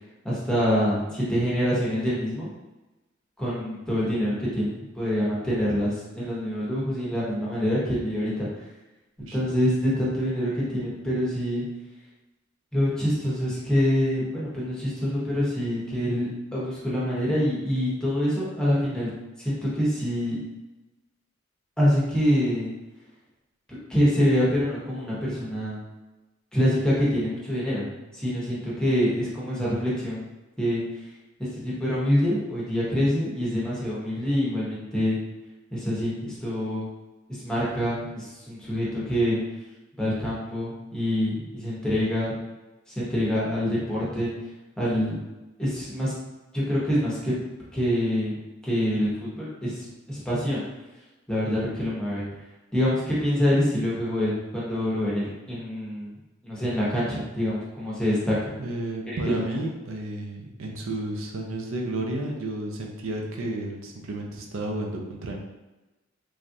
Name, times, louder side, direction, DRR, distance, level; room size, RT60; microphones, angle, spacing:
voice 1, 0.2-2.5 3.4-8.5 9.3-11.7 12.7-19.1 19.4-20.4 21.8-22.7 23.9-25.8 26.5-30.3 30.6-30.8 31.4-35.2 35.7-36.9 37.4-39.4 40.0-42.3 42.9-44.3 44.8-45.2 45.6-46.1 46.5-47.4 47.7-48.4 48.6-50.6 51.3-52.2 52.7-56.1 56.4-58.5 59.1-59.4, equal, 5° left, -8 dB, 0.8 m, -25 dB
voice 2, 58.6-65.4, right 1 dB, 85° right, 1 dB, 0.5 m, -32 dB
3.2 x 2.4 x 2.6 m, 1.1 s
head